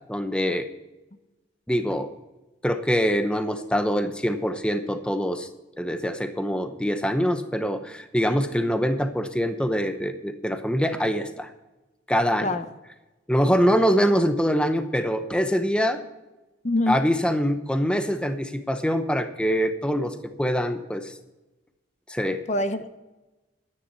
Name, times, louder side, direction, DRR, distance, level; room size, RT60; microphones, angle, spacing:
voice 1, 0.1-0.7 1.7-2.1 2.6-5.5 5.8-11.5 12.1-12.5 13.3-16.0 16.9-21.1 22.1-22.4, equal, 5° left, 8 dB, 0.7 m, -24 dB
voice 2, 16.6-17.0 22.5-22.9, left 1 dB, 35° left, 10 dB, 0.7 m, -24 dB
13.0 x 9.9 x 5.5 m, 1.1 s
head